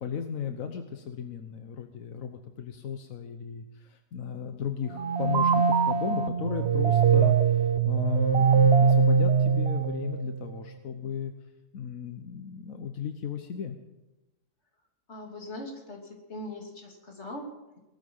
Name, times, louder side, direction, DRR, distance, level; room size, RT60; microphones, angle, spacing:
voice 1, 0.0-11.3 11.7-13.8, left 7 dB, 90° left, 6 dB, 1.4 m, -35 dB
sound 1, 4.9-10.4, right 6 dB, 55° right, 0.9 m, -22 dB
voice 2, 15.1-17.8, left 1 dB, 55° left, 0 dB, 3.4 m, -41 dB
19.5 x 13.0 x 5.6 m, 1.0 s
omnidirectional pair, 1.4 m